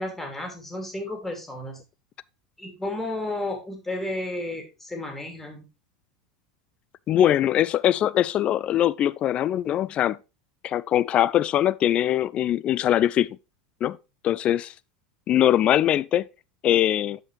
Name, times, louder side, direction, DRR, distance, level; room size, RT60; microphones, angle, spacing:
voice 1, 0.0-1.8 2.6-5.7, left 1 dB, 5° left, 2.7 m, -32 dB
voice 2, 7.1-10.2 10.6-13.4 13.8-14.0 14.2-14.7 15.3-16.3 16.6-17.2, left 11 dB, 35° left, 0.3 m, -22 dB
8.0 x 7.1 x 3.2 m
figure-of-eight pair, 80°, 3 cm